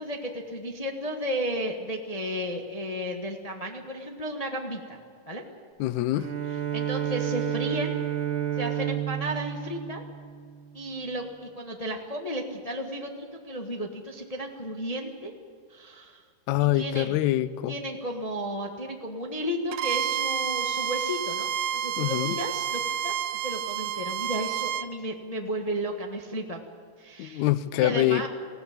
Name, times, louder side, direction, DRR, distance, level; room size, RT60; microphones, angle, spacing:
voice 1, 0.0-5.0 5.3-5.4 6.7-8.0 8.6-10.0 10.7-15.3 15.7-16.2 16.6-17.2 17.7-23.1 23.4-26.6 27.0-27.5 27.8-28.3, equal, 50° left, 0.4 m, -33 dB
voice 2, 5.8-6.3 16.5-17.8 22.0-22.4 27.2-28.3, left 15 dB, 75° left, 1.9 m, -25 dB
Bowed string instrument, 6.2-10.8, right 10 dB, 50° right, 1.7 m, -31 dB
Bowed string instrument 2, 19.7-24.9, right 9 dB, 75° right, 2.2 m, -29 dB
20.0 x 16.0 x 8.8 m
omnidirectional pair, 3.6 m